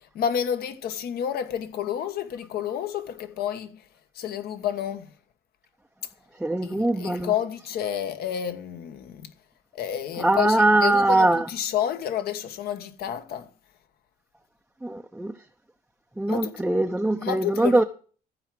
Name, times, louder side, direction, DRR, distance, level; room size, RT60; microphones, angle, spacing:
voice 1, 0.1-3.8 4.1-5.1 6.6-9.3 9.7-13.5 16.3-16.6 17.2-17.8, left 9 dB, 65° left, 1.3 m, -30 dB
voice 2, 6.4-7.3 10.2-11.4 14.8-15.3 16.2-17.8, right 2 dB, 5° right, 0.6 m, -22 dB
14.0 x 4.8 x 7.6 m
cardioid pair, 110°, 17 cm